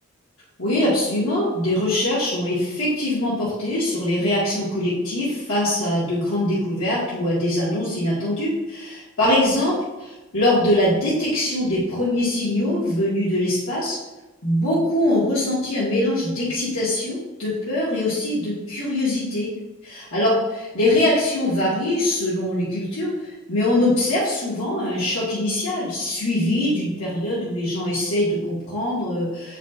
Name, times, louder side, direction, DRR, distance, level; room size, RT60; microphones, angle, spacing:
voice 1, 0.6-14.0 14.4-19.5 19.8-29.6, left 1 dB, 75° left, -8 dB, 1.5 m, -23 dB
7.3 x 5.6 x 2.4 m, 1.1 s
head